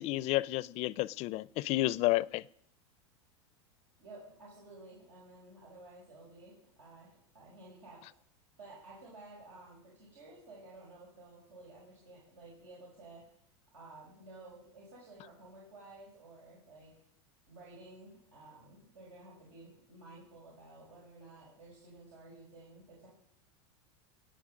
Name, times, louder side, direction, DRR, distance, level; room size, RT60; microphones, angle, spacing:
voice 1, 0.0-2.4, left 17 dB, 45° left, 0.4 m, -31 dB
voice 2, 4.0-8.0 8.6-13.2 13.7-16.9 17.5-23.1, right 2 dB, 80° right, 5.5 m, -53 dB
18.0 x 8.9 x 6.3 m
supercardioid pair, 115°, 15 cm